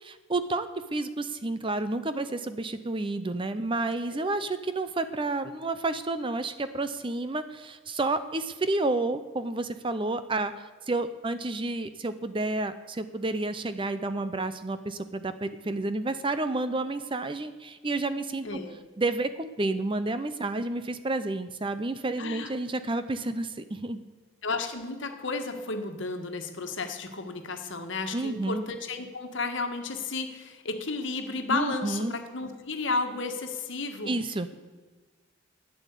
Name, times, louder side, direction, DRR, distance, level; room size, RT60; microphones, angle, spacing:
voice 1, 0.0-18.6 19.0-24.0 28.1-28.6 31.5-32.1 34.1-34.5, right 2 dB, 25° right, 11 dB, 0.6 m, -30 dB
voice 2, 18.4-18.7 22.2-22.5 24.4-34.1, left 3 dB, 60° left, 5 dB, 1.5 m, -33 dB
12.0 x 9.2 x 8.3 m, 1.3 s
head